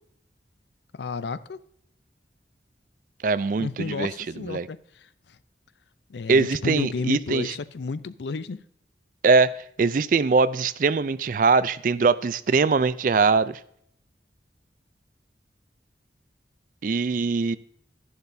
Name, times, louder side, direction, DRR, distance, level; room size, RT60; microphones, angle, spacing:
voice 1, 0.9-1.6 3.6-5.4 6.1-8.6, left 4 dB, 75° left, 15 dB, 0.5 m, -32 dB
voice 2, 3.2-4.1 4.5-4.7 6.3-7.5 9.2-13.6 16.8-17.6, right 4 dB, 50° right, 16 dB, 0.4 m, -22 dB
11.5 x 11.0 x 2.7 m, 0.69 s
head